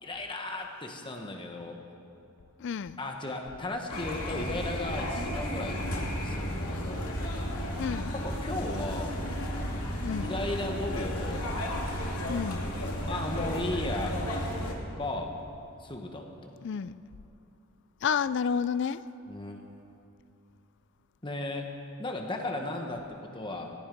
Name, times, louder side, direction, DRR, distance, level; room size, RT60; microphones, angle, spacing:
voice 1, 0.0-1.8 3.0-5.8 6.2-7.1 8.1-9.2 10.2-11.5 13.1-14.2 15.0-15.3 15.8-16.5 19.3-19.6 21.2-21.7 22.0-23.7, left 2 dB, 20° left, 1.2 m, -35 dB
voice 2, 2.6-3.0 7.8-8.1 10.0-10.3 12.3-12.7 16.6-17.0 18.0-19.0, left 7 dB, 55° left, 0.3 m, -30 dB
sound 1, 3.9-14.7, equal, 80° left, 2.4 m, -33 dB
17.0 x 15.0 x 5.2 m
head